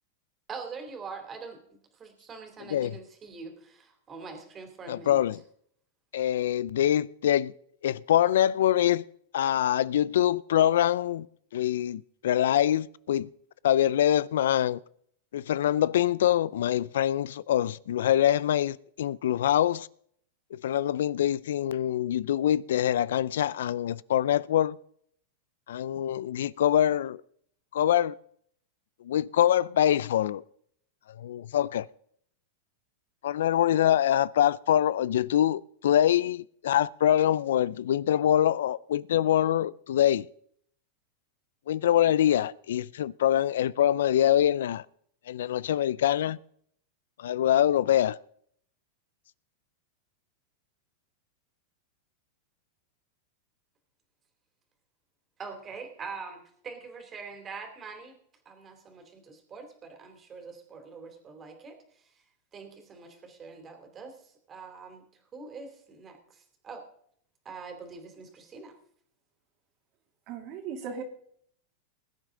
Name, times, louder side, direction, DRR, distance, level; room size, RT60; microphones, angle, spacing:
voice 1, 0.5-5.2 55.4-58.2 58.4-62.1 62.5-65.1 65.3-66.8 67.4-68.7, right 5 dB, 25° right, 3.0 m, -44 dB
voice 2, 4.9-5.4 6.1-7.5 7.8-9.0 9.3-11.3 11.5-13.3 13.6-14.8 15.3-19.9 20.5-24.8 25.7-27.2 27.7-28.1 29.0-30.4 31.2-31.9 33.2-40.3 41.7-44.8 45.3-46.4 47.2-48.2, left 11 dB, 80° left, 0.4 m, -24 dB
voice 3, 70.3-71.0, right 6 dB, 45° right, 2.6 m, -37 dB
20.5 x 9.0 x 3.8 m
supercardioid pair, 135°, 0 cm